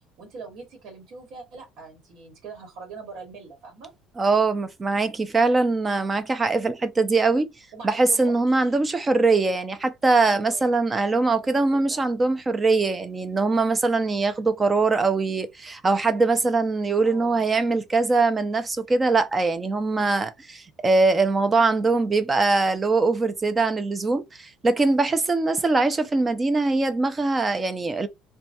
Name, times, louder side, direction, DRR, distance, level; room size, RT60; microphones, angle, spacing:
voice 1, 0.2-3.9 7.7-8.7 10.2-10.9 11.3-12.0 17.0-17.4, right 4 dB, 50° right, 1.2 m, -42 dB
voice 2, 4.2-7.5 7.8-28.1, right 3 dB, 15° right, 0.4 m, -22 dB
3.2 x 2.2 x 2.8 m
cardioid pair, 175°, 0 cm